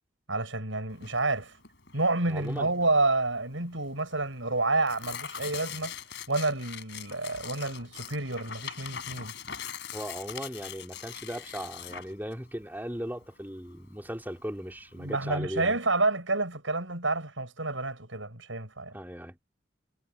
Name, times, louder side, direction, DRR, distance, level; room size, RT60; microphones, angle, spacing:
voice 1, 0.3-1.5 1.9-6.0 6.3-9.3 15.0-18.9, right 2 dB, 75° right, 7.7 m, -29 dB
Tearing, 0.9-15.2, left 8 dB, 65° left, 4.1 m, -43 dB
voice 2, 2.3-2.7 9.9-15.8 18.9-19.4, equal, 10° right, 3.8 m, -37 dB
head